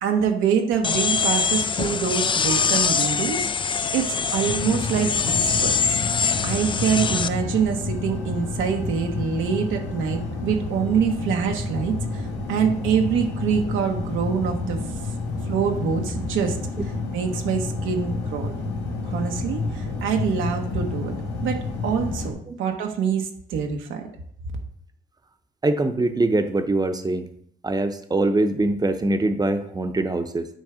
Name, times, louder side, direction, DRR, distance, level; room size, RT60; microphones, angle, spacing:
voice 1, 0.0-3.5 3.9-5.9 6.4-14.8 15.5-16.6 17.1-18.5 19.0-21.1 21.4-24.1, right 7 dB, 90° right, 3 dB, 1.0 m, -25 dB
sound 1, 0.8-7.3, left 5 dB, 25° left, 0.4 m, -23 dB
sound 2, 4.4-22.3, left 3 dB, 90° left, 1.9 m, -30 dB
voice 2, 25.6-27.3 27.6-30.5, right 2 dB, 20° right, 8 dB, 0.8 m, -23 dB
9.0 x 3.3 x 4.9 m, 0.65 s
cardioid pair, 90°, 20 cm